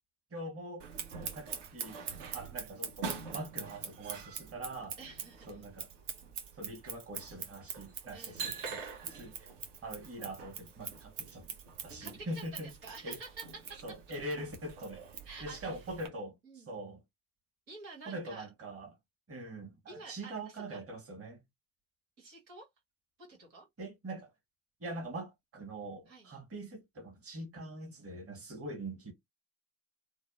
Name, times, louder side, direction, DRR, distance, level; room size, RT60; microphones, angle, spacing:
voice 1, 0.3-0.9 1.2-5.0 5.5-5.9 6.6-9.5 9.8-11.5 11.8-12.7 13.0-13.2 13.8-15.0 15.4-16.3 16.7-17.0 18.1-18.9 19.3-21.4 23.8-24.3 24.8-29.1, right 1 dB, 30° right, 1.4 m, -43 dB
Scissors, 0.8-16.1, right 6 dB, 55° right, 1.0 m, -43 dB
voice 2, 5.0-5.5 8.1-8.5 12.0-14.0 15.2-15.9 16.4-16.7 17.7-18.5 19.9-20.8 22.2-22.7 23.2-23.7 26.1-26.3, right 3 dB, 85° right, 1.5 m, -49 dB
3.2 x 2.1 x 2.4 m
hypercardioid pair, 55°, 49 cm